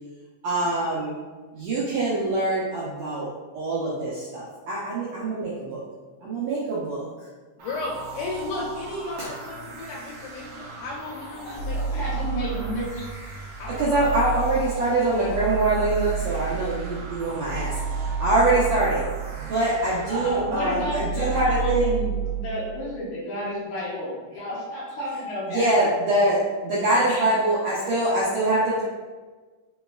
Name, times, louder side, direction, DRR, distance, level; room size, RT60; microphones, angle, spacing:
voice 1, 0.4-1.1 1.6-5.8 6.2-7.1 9.2-9.3 13.8-19.0 19.4-22.0 25.5-28.8, right 2 dB, 85° right, -7 dB, 1.5 m, -24 dB
voice 2, 7.6-12.8 13.6-13.9, left 2 dB, 90° left, -3 dB, 2.4 m, -35 dB
sound 1, 7.6-20.4, right 2 dB, 70° right, 1.3 m, -40 dB
voice 3, 11.4-13.1 20.1-25.7 27.0-27.3, left 1 dB, 70° left, -6 dB, 2.1 m, -31 dB
sound 2, 11.6-13.0 13.4-19.9 20.2-22.5, right 6 dB, 50° left, 1.2 m, -30 dB
5.1 x 3.0 x 2.3 m, 1.3 s
omnidirectional pair, 3.9 m